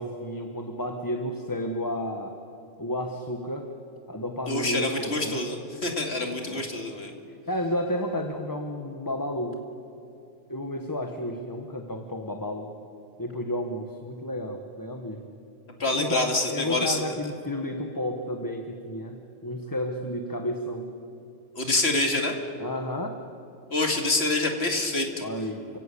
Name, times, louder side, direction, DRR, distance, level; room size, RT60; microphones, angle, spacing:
voice 1, 0.0-2.3 2.8-3.7 4.1-5.4 6.4-6.6 7.5-9.6 10.5-12.7 13.2-15.2 15.9-20.9 22.6-23.2 25.2-25.8, left 1 dB, 15° left, 4 dB, 1.3 m, -32 dB
voice 2, 4.5-5.6 5.8-7.1 15.8-17.2 21.6-22.4 23.7-25.3, left 2 dB, 60° left, 3 dB, 2.7 m, -26 dB
29.0 x 16.5 x 8.4 m, 2.7 s
omnidirectional pair, 1.2 m